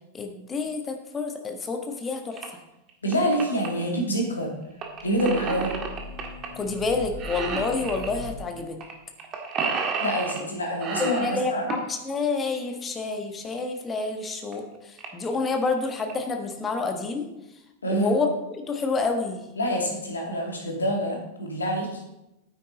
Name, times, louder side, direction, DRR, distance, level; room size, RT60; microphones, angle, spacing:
voice 1, 0.1-2.6 6.5-8.8 11.0-17.3 17.9-19.5, left 4 dB, 20° left, 4 dB, 1.4 m, -28 dB
sound 1, 2.3-2.5 2.9-3.7 4.8-6.5 6.8-6.9 7.2-8.1 8.8-8.9 9.2-10.5 10.8-11.9 13.6-13.7 14.2-14.3 14.5-14.6 15.0-15.3 15.8-16.1, right 5 dB, 30° right, 1.7 m, -31 dB
voice 2, 3.0-4.5 5.0-5.7 10.0-11.6 17.8-18.1 19.6-22.0, equal, 75° left, 0 dB, 2.5 m, -26 dB
sound 2, 4.9-8.4, left 2 dB, 45° left, 1.8 m, -40 dB
9.1 x 8.9 x 3.9 m, 0.93 s
figure-of-eight pair, 90°, 0 cm